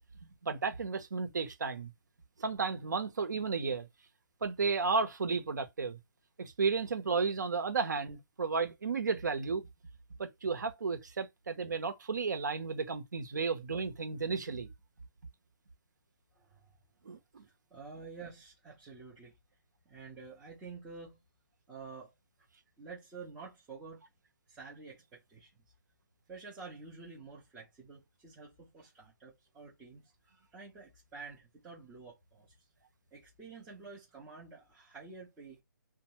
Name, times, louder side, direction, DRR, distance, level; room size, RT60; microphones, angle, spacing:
voice 1, 0.4-1.9 2.4-3.9 4.4-6.0 6.4-9.7 10.2-14.7 17.0-17.4, right 4 dB, 65° right, 0.8 m, -33 dB
voice 2, 16.3-16.8 17.7-19.3 19.9-21.2 21.7-22.1 22.8-24.0 24.5-25.6 26.3-32.5 33.1-35.6, right 4 dB, 5° right, 0.5 m, -49 dB
2.6 x 2.2 x 2.9 m
hypercardioid pair, 170°, 11 cm